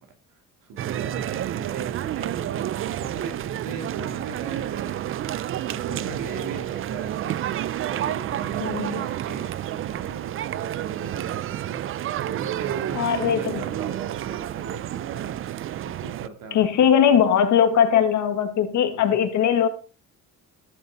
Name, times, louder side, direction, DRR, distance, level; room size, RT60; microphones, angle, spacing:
voice 1, 0.3-7.4 7.8-15.4 15.8-16.9 18.9-19.2, right 4 dB, 80° right, 4 dB, 3.1 m, -39 dB
sound 1, 0.8-16.3, right 12 dB, 40° right, 0.4 m, -30 dB
voice 2, 8.6-9.0 13.0-13.6 16.5-19.7, left 8 dB, 60° left, 9 dB, 1.7 m, -20 dB
14.5 x 7.2 x 4.1 m, 0.35 s
cardioid pair, 165°, 33 cm